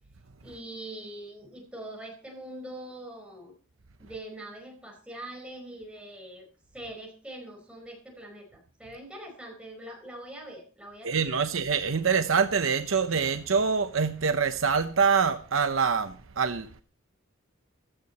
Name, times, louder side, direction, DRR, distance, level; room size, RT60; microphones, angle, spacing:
voice 1, 0.4-3.5 4.0-6.5 6.7-11.5, right 1 dB, 5° right, 4.6 m, -43 dB
voice 2, 11.0-16.8, right 5 dB, 70° right, 0.8 m, -25 dB
15.5 x 12.5 x 4.2 m
head